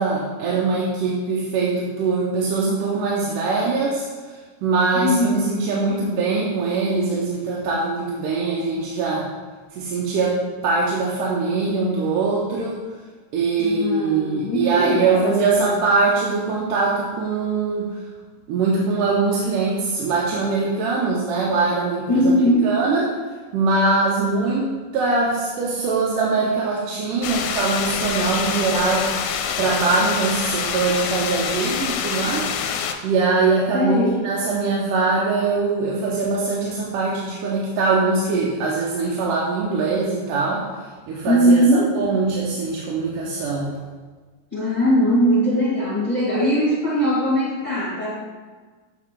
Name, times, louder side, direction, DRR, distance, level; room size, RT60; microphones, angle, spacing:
voice 1, 0.0-4.1 4.6-9.3 9.8-12.8 13.3-18.0 18.5-22.4 22.6-23.1 23.5-29.1 29.6-40.7 41.1-43.7, right 3 dB, 90° right, -4 dB, 2.4 m, -22 dB
voice 2, 4.9-5.5 13.6-15.8 22.1-22.7 33.7-34.2 41.2-41.9 44.5-48.2, equal, 20° left, -9 dB, 1.1 m, -20 dB
sound 1, 27.2-33.0, left 7 dB, 80° left, 1.9 m, -26 dB
8.2 x 4.2 x 3.7 m, 1.4 s
omnidirectional pair, 3.6 m